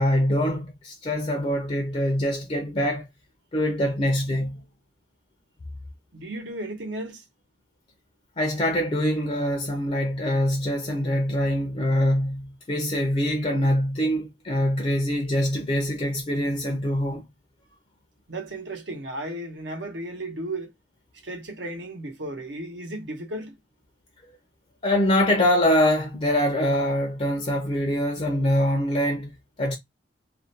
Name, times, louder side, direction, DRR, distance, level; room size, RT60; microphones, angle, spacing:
voice 1, 0.0-3.1 3.5-4.6 8.4-17.2 24.8-29.3 29.6-29.8, equal, 35° left, 0.4 m, -24 dB
voice 2, 6.1-7.2 18.3-20.7 21.2-23.5, right 1 dB, 80° right, 0.9 m, -34 dB
2.4 x 2.1 x 2.7 m
head